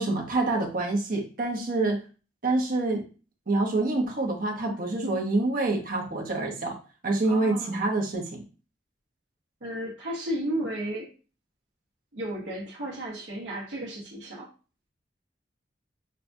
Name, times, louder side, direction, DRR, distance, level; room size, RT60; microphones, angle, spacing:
voice 1, 0.0-2.0 2.4-3.0 3.5-6.8 7.0-8.4, right 2 dB, 50° right, 1 dB, 1.0 m, -26 dB
voice 2, 7.3-7.8 9.6-11.1 12.1-14.5, right 1 dB, 75° right, -4 dB, 1.2 m, -33 dB
6.4 x 2.3 x 2.6 m, 0.35 s
head